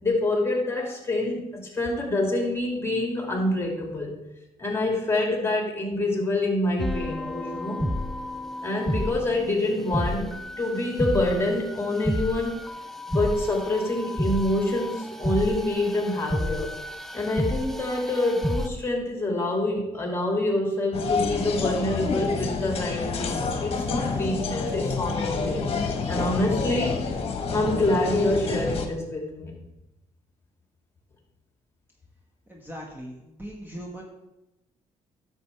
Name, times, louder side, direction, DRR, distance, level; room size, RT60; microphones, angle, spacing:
voice 1, 0.0-4.1 4.6-7.8 8.6-12.6 13.1-16.7 17.1-27.0 27.5-29.6, left 1 dB, 20° left, 0 dB, 2.6 m, -26 dB
sound 1, 6.8-18.7, left 1 dB, ahead, 0.6 m, -31 dB
sound 2, 20.9-28.9, left 4 dB, 50° left, 1.3 m, -28 dB
voice 2, 32.5-34.0, equal, 15° right, -1 dB, 1.5 m, -39 dB
10.5 x 7.1 x 3.4 m, 0.94 s
cardioid pair, 85°, 13 cm